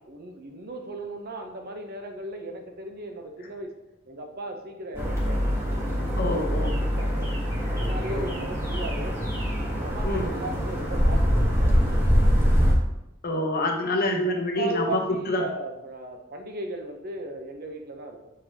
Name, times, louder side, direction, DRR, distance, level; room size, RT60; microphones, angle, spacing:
voice 1, 0.0-3.7 4.1-7.3 7.7-9.2 9.7-12.6 14.3-18.3, right 2 dB, 50° right, 4 dB, 0.8 m, -37 dB
sound 1, 4.9-12.7, equal, 15° right, 1.5 m, -24 dB
voice 2, 6.2-6.8 8.1-8.4 10.0-10.3 13.2-15.4, left 1 dB, 50° left, 2 dB, 0.9 m, -27 dB
6.9 x 5.0 x 2.9 m, 0.89 s
head